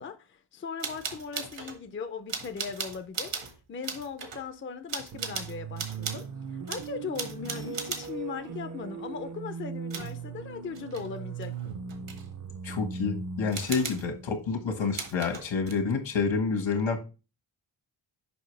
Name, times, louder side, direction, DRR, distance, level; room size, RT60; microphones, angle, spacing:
voice 1, 0.0-3.4 3.7-6.2 6.5-11.5 13.7-13.9, left 5 dB, 30° left, 0.4 m, -38 dB
sound 1, 0.8-1.8 2.3-3.6 3.8-4.4 4.9-6.3 6.7-8.2 9.9-10.2 10.7-11.1 11.4-12.3 13.5-14.1 14.9-15.7, right 6 dB, 75° right, 1.3 m, -37 dB
sound 2, 5.1-15.0, right 5 dB, 40° right, 0.5 m, -39 dB
voice 2, 12.6-17.0, left 5 dB, 75° left, 1.5 m, -28 dB
7.0 x 5.3 x 3.2 m
wide cardioid pair, 175°, 45 cm